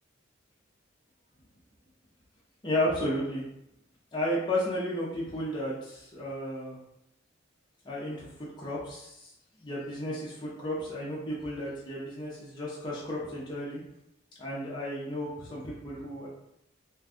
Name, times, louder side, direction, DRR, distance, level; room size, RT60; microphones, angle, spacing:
voice 1, 2.6-3.4 4.1-6.8 7.8-9.3 9.6-13.8 14.4-16.3, left 1 dB, 25° left, -6 dB, 0.6 m, -33 dB
2.5 x 2.3 x 3.4 m, 0.82 s
head